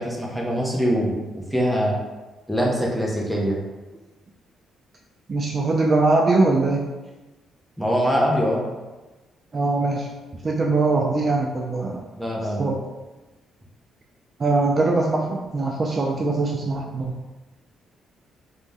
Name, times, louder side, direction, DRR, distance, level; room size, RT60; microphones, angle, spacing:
voice 1, 0.0-2.0 2.5-3.6 7.8-8.6 12.2-12.7, equal, ahead, -3 dB, 0.7 m, -23 dB
voice 2, 5.3-6.8 9.5-10.1 10.4-12.0 12.6-12.8 14.4-17.1, right 3 dB, 40° right, -1 dB, 0.3 m, -21 dB
2.5 x 2.2 x 3.3 m, 1.2 s
cardioid pair, 90°, 0 cm